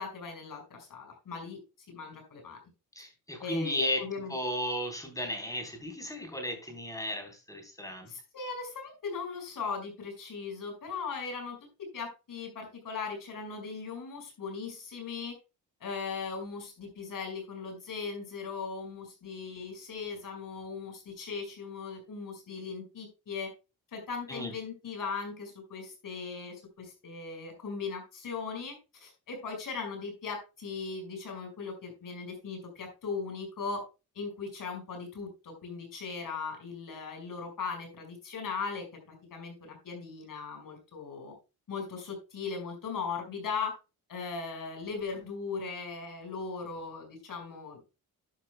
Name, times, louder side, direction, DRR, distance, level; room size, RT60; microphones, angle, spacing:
voice 1, 0.0-1.6 1.9-2.6 3.4-4.3 8.1-11.6 11.9-15.3 15.8-23.5 23.9-33.8 34.1-41.3 41.7-43.7 44.1-47.8, left 5 dB, 60° left, 3 dB, 5.5 m, -38 dB
voice 2, 3.0-4.0 4.3-8.1 24.3-24.5, left 1 dB, 10° left, 3 dB, 3.9 m, -34 dB
11.5 x 11.0 x 2.2 m, 0.29 s
wide cardioid pair, 155°, 37 cm